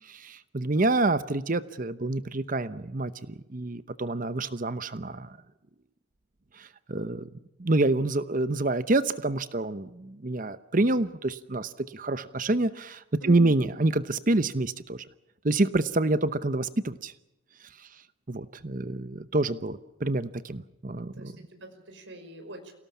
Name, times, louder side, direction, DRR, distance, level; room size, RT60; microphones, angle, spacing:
voice 1, 0.3-3.1 3.5-5.3 6.6-7.3 7.6-15.0 15.4-17.1 18.3-21.3, right 2 dB, 40° right, 13 dB, 0.9 m, -27 dB
voice 2, 13.2-13.6 21.2-22.7, right 1 dB, 65° right, 5 dB, 5.5 m, -42 dB
28.5 x 18.5 x 7.2 m, 0.92 s
head